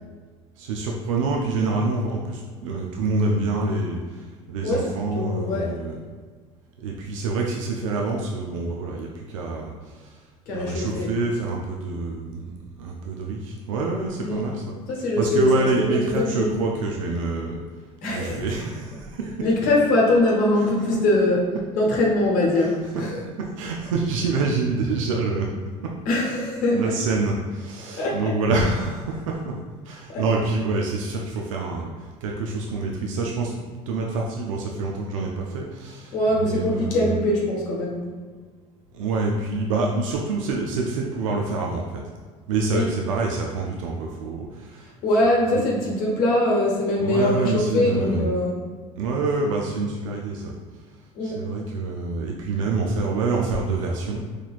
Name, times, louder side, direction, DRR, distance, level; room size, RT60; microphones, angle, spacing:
voice 1, 0.6-6.0 6.8-10.2 10.5-14.6 15.2-17.6 18.1-19.3 22.6-22.7 23.6-25.5 25.8-25.9 26.7-29.5 29.9-33.5 33.9-37.2 38.9-42.0 42.5-44.9 47.0-48.3 49.0-50.5 51.2-54.2, right 3 dB, 85° right, 0 dB, 0.4 m, -26 dB
voice 2, 4.6-5.7 10.5-11.1 14.2-14.5 14.9-16.5 18.0-18.6 19.4-21.4 21.7-23.2 26.1-26.9 28.0-28.3 30.1-30.2 36.1-38.1 42.7-42.9 45.0-48.5 51.1-51.5, left 1 dB, 65° left, -3 dB, 0.9 m, -22 dB
3.9 x 3.1 x 2.3 m, 1.5 s
hypercardioid pair, 70°, 16 cm